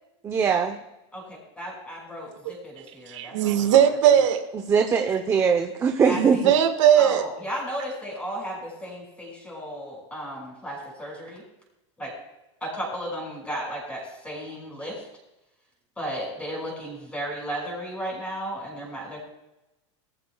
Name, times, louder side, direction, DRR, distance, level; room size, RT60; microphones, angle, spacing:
voice 1, 0.2-0.8 4.7-6.5, right 6 dB, 15° right, 5 dB, 0.8 m, -21 dB
voice 2, 1.6-3.8 6.0-6.4 6.9-11.4 12.0-12.1 12.6-15.1 16.0-19.2, equal, 5° left, -2 dB, 5.8 m, -34 dB
voice 3, 3.1-4.4 6.2-7.2, right 9 dB, 70° right, 5 dB, 1.6 m, -19 dB
20.5 x 14.5 x 2.3 m, 0.97 s
supercardioid pair, 155°, 16 cm